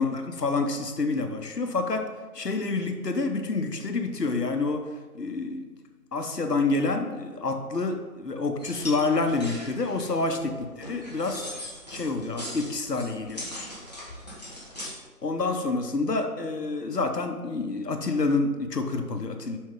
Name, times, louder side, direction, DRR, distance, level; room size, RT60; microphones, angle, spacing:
voice 1, 0.0-2.1 2.3-4.9 5.1-5.6 6.1-11.5 11.9-13.4 15.2-19.6, left 3 dB, 85° left, 6 dB, 1.0 m, -28 dB
sound 1, 8.6-14.9, left 1 dB, 25° left, 1.2 m, -40 dB
7.4 x 5.5 x 3.7 m, 1.3 s
figure-of-eight pair, 165°, 47 cm